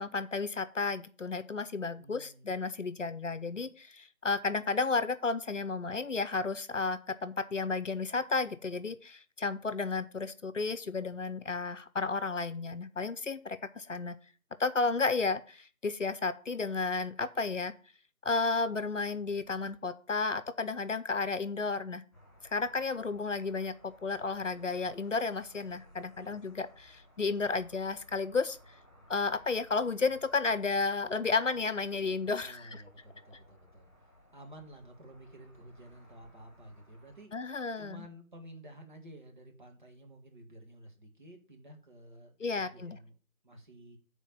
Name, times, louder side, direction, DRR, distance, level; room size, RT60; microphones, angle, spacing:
voice 1, 0.0-14.2 14.6-17.7 18.2-22.0 22.5-28.6 29.1-32.8 37.3-38.1 42.4-43.0, left 4 dB, 60° left, 13 dB, 0.8 m, -32 dB
voice 2, 2.0-2.6 26.2-26.4 32.4-43.2 43.4-44.0, right 1 dB, 35° right, 2 dB, 1.9 m, -52 dB
sound 1, 22.1-37.2, left 1 dB, 20° left, 2.8 m, -60 dB
8.2 x 4.5 x 7.1 m, 0.40 s
figure-of-eight pair, 165°, 42 cm